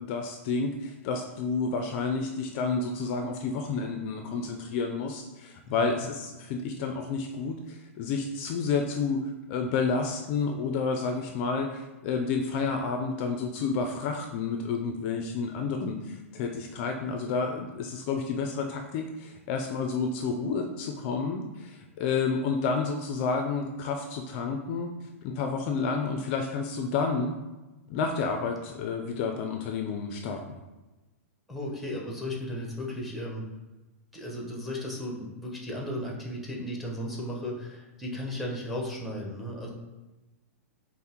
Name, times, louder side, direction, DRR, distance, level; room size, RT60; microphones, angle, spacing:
voice 1, 0.0-9.2 9.5-24.9 25.2-27.3 27.9-30.6, left 4 dB, 45° left, 4 dB, 0.4 m, -30 dB
voice 2, 31.5-33.5 34.1-39.7, left 1 dB, ahead, -1 dB, 0.8 m, -35 dB
5.4 x 2.0 x 2.9 m, 1.1 s
hypercardioid pair, 110°, 8 cm